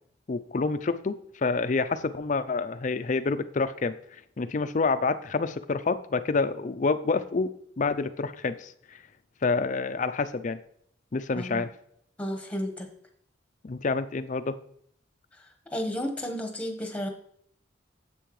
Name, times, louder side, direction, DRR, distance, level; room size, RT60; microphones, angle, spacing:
voice 1, 0.3-4.0 4.4-9.0 9.4-10.6 11.1-11.7 13.6-14.6, left 4 dB, 40° left, 12 dB, 0.4 m, -28 dB
voice 2, 12.2-12.9 15.7-17.1, equal, 5° left, 3 dB, 1.2 m, -32 dB
10.0 x 7.7 x 3.1 m, 0.66 s
head